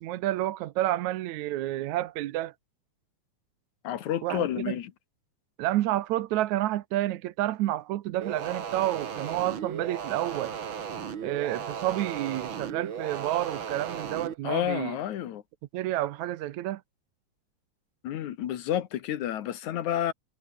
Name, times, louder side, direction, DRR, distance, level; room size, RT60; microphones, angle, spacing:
voice 1, 0.0-2.5 4.2-4.7 5.6-10.5 11.2-15.0 15.7-16.8, right 14 dB, 80° right, 2.2 m, -29 dB
voice 2, 3.8-4.9 14.4-15.4 18.0-20.1, left 11 dB, 80° left, 2.8 m, -30 dB
sound 1, 8.2-14.3, right 7 dB, 45° right, 2.4 m, -36 dB
omnidirectional pair, 3.4 m